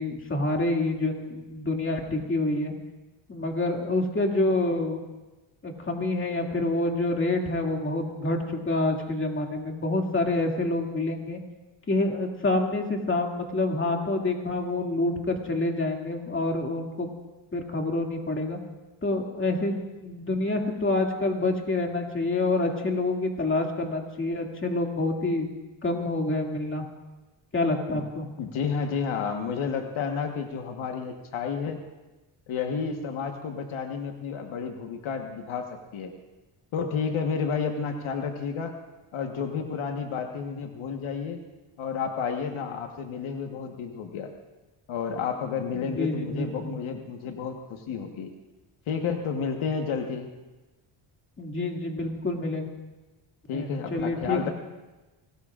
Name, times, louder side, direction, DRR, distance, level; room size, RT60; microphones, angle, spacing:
voice 1, 0.0-2.7 3.3-5.0 5.6-11.4 11.9-17.1 17.5-18.6 19.0-25.5 25.8-26.9 27.5-28.3 45.7-46.7 51.4-52.7 53.5-54.5, left 2 dB, 25° left, 1 dB, 2.3 m, -27 dB
voice 2, 28.4-31.8 32.5-36.1 36.7-38.7 39.1-41.4 41.8-44.3 44.9-48.3 48.9-50.3 53.5-54.5, left 6 dB, 70° left, 4 dB, 1.4 m, -31 dB
24.0 x 19.0 x 2.5 m, 1.1 s
cardioid pair, 95°, 49 cm